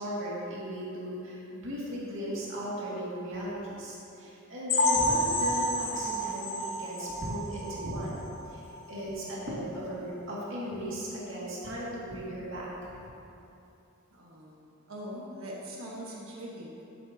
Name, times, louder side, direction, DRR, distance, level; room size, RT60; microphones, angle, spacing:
voice 1, 0.0-12.7, equal, 70° right, -7 dB, 2.1 m, -37 dB
sound 1, 4.7-8.3 8.7-8.9 9.2-9.3 9.8-9.9, left 1 dB, 70° left, 1.4 m, -29 dB
voice 2, 14.1-16.8, equal, 85° right, -3 dB, 1.4 m, -42 dB
11.0 x 9.0 x 2.8 m, 2.8 s
head